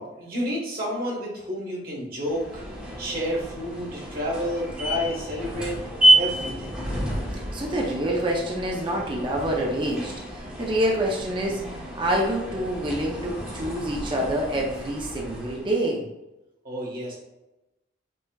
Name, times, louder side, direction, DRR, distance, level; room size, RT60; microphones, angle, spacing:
voice 1, 0.0-2.6 3.0-5.8 6.1-6.7 13.6-13.8 16.6-17.1, equal, 50° right, -3 dB, 1.4 m, -30 dB
sound 1, 2.2-15.7, right 1 dB, 5° right, 1.0 m, -29 dB
voice 2, 7.3-11.6 11.9-16.0, right 1 dB, 25° right, -1 dB, 0.5 m, -27 dB
5.3 x 2.8 x 2.3 m, 0.97 s
head